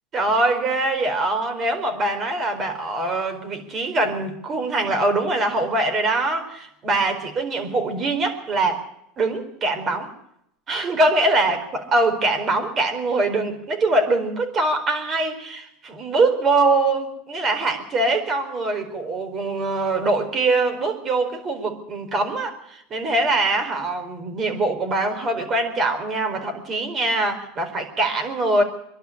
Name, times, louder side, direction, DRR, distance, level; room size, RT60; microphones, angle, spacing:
voice 1, 0.1-8.8 9.2-10.1 10.7-28.6, right 2 dB, 35° right, 6 dB, 4.5 m, -23 dB
24.5 x 11.5 x 9.9 m, 0.77 s
supercardioid pair, 125°, 0 cm